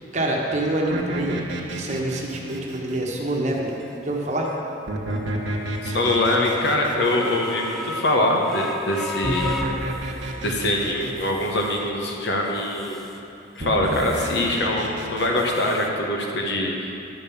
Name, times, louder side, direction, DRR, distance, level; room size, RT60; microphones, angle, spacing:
voice 1, 0.0-1.4 1.7-3.7 4.0-4.5, right 1 dB, 40° right, -2 dB, 1.1 m, -26 dB
sound 1, 0.9-3.8 4.9-8.3 9.2-11.9 13.6-15.4, right 1 dB, 90° right, 1.2 m, -31 dB
sound 2, 1.2-1.3 1.8-2.0 2.5-2.6 3.2-3.3 3.8-4.0 4.4-4.6 5.1-5.2 5.7-10.5 10.9-11.8 12.3-13.2 13.5-14.6 14.9-15.9, left 1 dB, ahead, 0.5 m, -36 dB
voice 2, 5.8-9.5 10.4-13.0 13.6-17.0, left 1 dB, 70° left, 0 dB, 1.1 m, -23 dB
11.5 x 5.4 x 7.0 m, 2.8 s
head